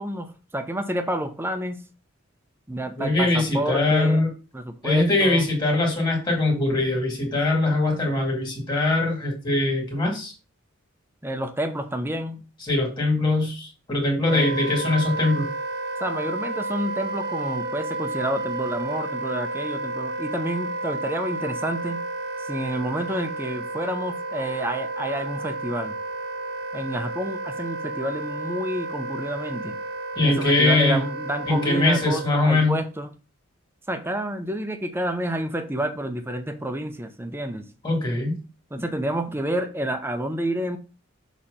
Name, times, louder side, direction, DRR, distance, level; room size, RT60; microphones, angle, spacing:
voice 1, 0.0-1.8 2.7-4.3 4.5-5.5 11.2-12.4 14.3-14.5 16.0-22.0 22.4-25.9 26.7-29.8 30.2-33.1 33.9-37.6 38.7-40.8, right 1 dB, 10° right, 8 dB, 0.7 m, -29 dB
voice 2, 3.0-4.3 4.8-10.3 12.7-15.5 30.2-31.0 31.5-32.8 37.8-38.4, left 2 dB, 20° left, 0 dB, 2.3 m, -22 dB
Wind instrument woodwind instrument, 14.2-32.4, right 2 dB, 50° right, 1.0 m, -31 dB
6.6 x 3.1 x 5.5 m, 0.33 s
head